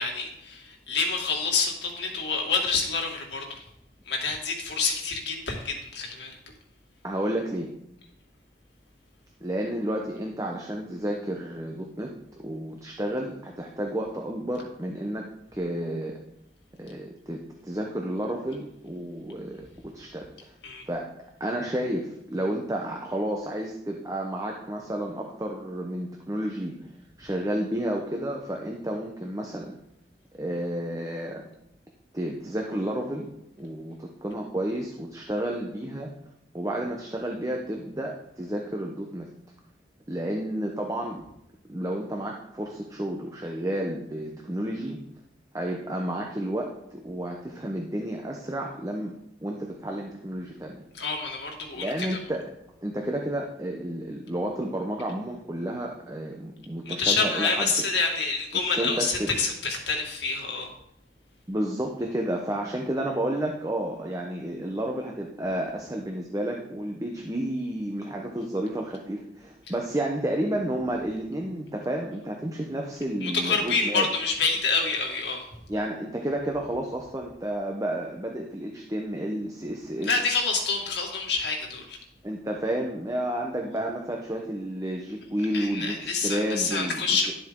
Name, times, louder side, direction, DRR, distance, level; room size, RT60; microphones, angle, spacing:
voice 1, 0.0-3.6 4.1-6.3 20.6-20.8 50.9-52.2 56.9-60.7 73.2-75.4 80.1-82.0 85.5-87.3, left 4 dB, 80° left, 1 dB, 2.1 m, -27 dB
voice 2, 7.0-7.7 9.4-12.1 12.4-15.2 15.5-16.2 16.8-20.5 20.9-21.1 21.4-26.8 27.2-29.8 30.3-31.4 32.1-33.3 33.6-36.1 36.5-39.3 40.1-41.2 41.7-45.0 45.5-49.1 49.4-50.8 51.7-52.4 52.8-57.7 58.8-59.3 61.5-74.1 75.7-80.1 82.2-87.3, right 1 dB, 20° right, 1 dB, 0.9 m, -31 dB
11.5 x 7.6 x 3.8 m, 0.79 s
head